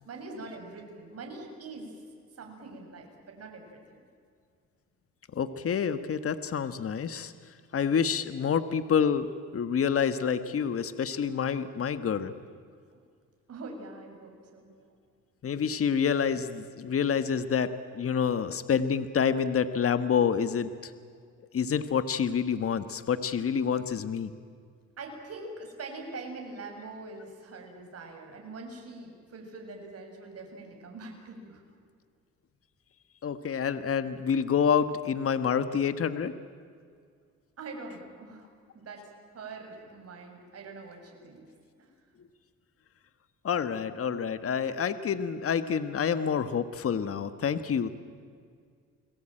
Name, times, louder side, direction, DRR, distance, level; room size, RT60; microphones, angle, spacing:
voice 1, 0.0-1.9 2.3-4.0 13.5-14.7 25.0-31.6 37.6-38.5 38.7-41.5 41.8-41.9, right 3 dB, 55° right, 2 dB, 7.2 m, -43 dB
voice 2, 5.3-7.3 7.7-9.3 9.5-12.3 15.4-20.9 21.5-24.3 33.2-36.3 43.4-47.9, left 7 dB, 50° left, 12 dB, 1.5 m, -28 dB
30.0 x 21.5 x 9.0 m, 2.1 s
cardioid pair, 90°, 30 cm